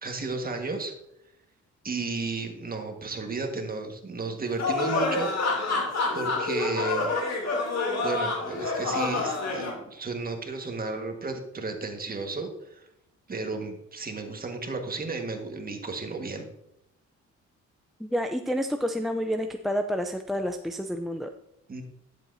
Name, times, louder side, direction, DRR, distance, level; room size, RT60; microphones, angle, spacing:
voice 1, 0.0-0.9 1.8-5.3 6.1-7.1 8.0-12.9 13.3-16.5 21.7-21.8, right 3 dB, 30° right, 4 dB, 1.6 m, -33 dB
sound 1, 4.6-9.7, left 3 dB, 60° left, 2.8 m, -27 dB
voice 2, 18.0-21.3, equal, ahead, 5 dB, 0.5 m, -29 dB
11.0 x 7.6 x 2.7 m, 0.82 s
cardioid pair, 90°, 30 cm